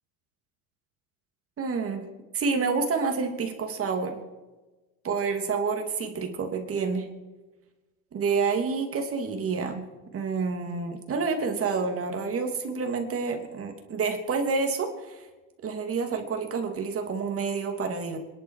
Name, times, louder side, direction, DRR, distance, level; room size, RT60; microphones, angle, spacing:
voice 1, 1.6-2.0 2.3-4.2 5.0-7.1 8.1-9.8 10.1-15.3 15.6-18.2, right 4 dB, 35° right, 4 dB, 3.0 m, -28 dB
26.0 x 11.0 x 5.0 m, 1.2 s
supercardioid pair, 125°, 42 cm